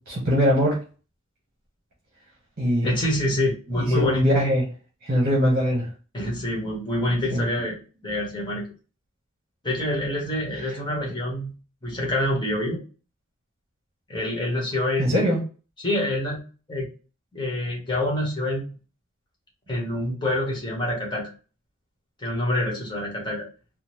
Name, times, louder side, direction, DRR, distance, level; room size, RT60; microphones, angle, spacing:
voice 1, 0.1-0.8 2.6-2.9 3.7-4.6 5.0-5.9 7.3-7.4 15.0-15.4, equal, 45° right, 1.0 m, -21 dB
voice 2, 2.8-4.4 6.1-7.8 8.0-8.7 9.6-11.5 11.8-12.8 14.1-15.3 15.8-16.4 16.7-16.9 17.3-18.6 19.7-21.3 22.2-23.5, left 1 dB, 20° left, 1.1 m, -26 dB
3.6 x 2.0 x 2.9 m
head